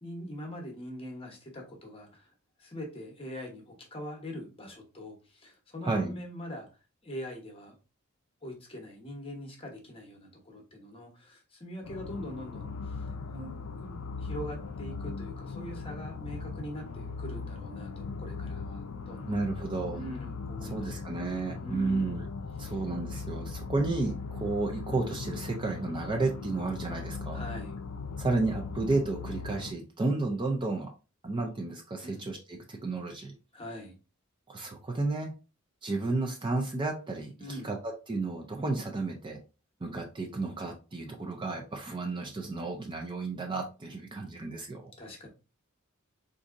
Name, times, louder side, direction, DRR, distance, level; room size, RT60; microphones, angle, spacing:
voice 1, 0.0-2.3 2.6-6.7 7.0-7.7 8.4-12.9 13.3-19.4 19.9-21.3 21.6-22.2 22.6-22.7 27.3-27.8 32.0-32.3 33.5-34.0 37.4-37.8 45.0-45.3, equal, 25° left, 2 dB, 0.9 m, -43 dB
voice 2, 5.8-6.1 19.3-20.0 20.6-22.2 22.6-27.4 28.2-30.9 31.2-33.3 34.5-35.3 35.8-39.4 39.8-44.9, right 3 dB, 20° right, 2 dB, 0.5 m, -32 dB
sound 1, 11.8-29.7, left 4 dB, 75° left, 0.4 m, -39 dB
4.1 x 2.6 x 2.4 m, 0.32 s
head